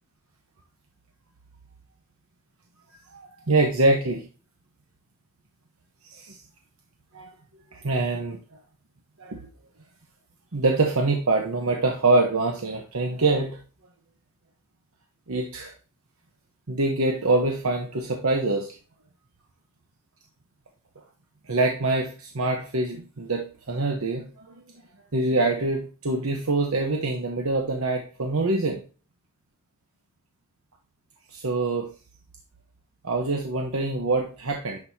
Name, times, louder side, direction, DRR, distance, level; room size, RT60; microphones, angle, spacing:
voice 1, 3.1-4.2 6.1-6.4 7.1-7.3 7.7-8.4 9.2-9.4 10.5-13.6 15.3-15.7 16.7-18.8 21.5-24.6 25.1-28.8 31.3-31.9 33.0-34.8, right 2 dB, 75° right, 2 dB, 1.0 m, -25 dB
10.5 x 5.5 x 2.8 m, 0.36 s
head